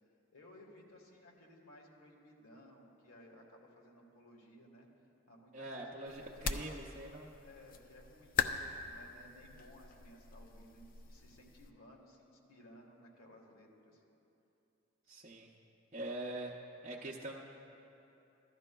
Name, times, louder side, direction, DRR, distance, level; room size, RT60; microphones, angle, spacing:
voice 1, 0.3-4.9 5.3-7.1 7.3-14.0, left 1 dB, 90° left, 0 dB, 1.5 m, -58 dB
voice 2, 5.5-7.3 15.1-15.5 15.9-16.5 16.8-17.3, right 1 dB, 35° right, -3 dB, 0.6 m, -43 dB
sound 1, 6.1-11.7, left 6 dB, 40° left, 0.4 m, -41 dB
15.5 x 12.0 x 2.2 m, 2.9 s
head